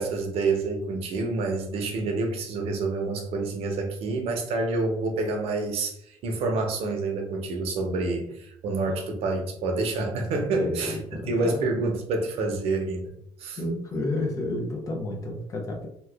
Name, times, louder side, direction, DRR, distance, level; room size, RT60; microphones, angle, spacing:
voice 1, 0.0-6.0 6.2-11.0 11.3-13.1 13.4-13.6, right 3 dB, 65° right, 3 dB, 0.7 m, -28 dB
voice 2, 10.5-11.6 13.6-15.9, left 2 dB, 30° left, 2 dB, 0.6 m, -30 dB
2.8 x 2.3 x 3.4 m, 0.72 s
cardioid pair, 165°, 11 cm